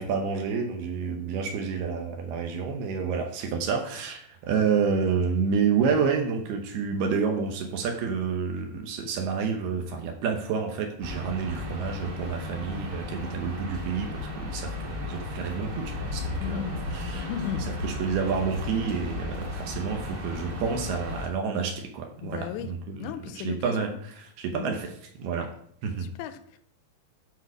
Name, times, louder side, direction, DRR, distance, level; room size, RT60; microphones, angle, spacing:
voice 1, 0.0-16.6 16.9-17.3 17.8-23.1 23.4-23.9 24.4-24.9 25.2-25.5 25.8-26.1, right 6 dB, 75° right, 4 dB, 2.6 m, -29 dB
sound 1, 11.0-21.3, left 2 dB, 50° right, 1.3 m, -35 dB
voice 2, 16.4-16.8 17.1-17.7 22.2-22.7 23.0-23.9 24.5-24.8 26.0-26.6, left 9 dB, 80° left, 10 dB, 2.7 m, -35 dB
12.5 x 4.5 x 4.8 m, 0.65 s
omnidirectional pair, 5.3 m